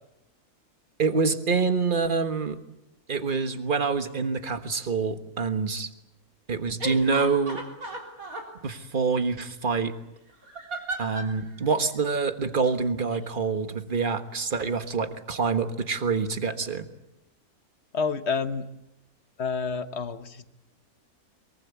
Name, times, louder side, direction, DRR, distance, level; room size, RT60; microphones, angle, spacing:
voice 1, 1.0-2.6 3.1-5.9 6.5-7.6 8.6-9.9 11.0-16.9, right 4 dB, 35° right, 10 dB, 1.5 m, -26 dB
sound 1, 6.8-8.5 10.4-11.4 12.5-12.7 13.1-13.2, right 1 dB, 65° right, 4.0 m, -35 dB
voice 2, 17.9-18.7 19.4-20.5, left 5 dB, 50° left, 11 dB, 1.4 m, -29 dB
23.0 x 23.0 x 8.3 m, 0.89 s
omnidirectional pair, 1.6 m